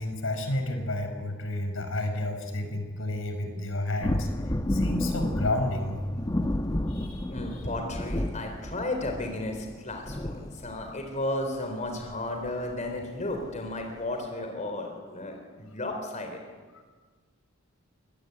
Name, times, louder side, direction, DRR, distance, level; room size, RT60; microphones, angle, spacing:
voice 1, 0.0-4.3 4.7-6.0 6.9-7.6, left 1 dB, 70° left, 6 dB, 5.0 m, -31 dB
sound 1, 4.0-11.1 12.1-12.2 12.5-12.7 13.4-13.5, left 1 dB, 20° left, 1.1 m, -31 dB
voice 2, 7.3-16.4, left 2 dB, 35° left, 4 dB, 3.8 m, -34 dB
25.5 x 21.0 x 9.8 m, 1.4 s
head